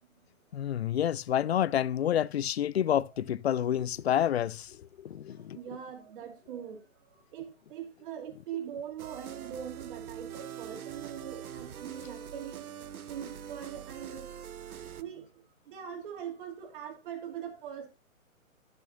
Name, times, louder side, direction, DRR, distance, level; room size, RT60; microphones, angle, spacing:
voice 1, 0.5-4.8 5.0-5.6, left 10 dB, 50° left, 0.4 m, -28 dB
voice 2, 5.3-12.7 13.1-14.3 14.7-17.9, right 9 dB, 35° right, 2.8 m, -42 dB
sound 1, 9.0-15.0, right 9 dB, 85° right, 0.8 m, -43 dB
12.0 x 7.4 x 2.6 m
hypercardioid pair, 145°, 42 cm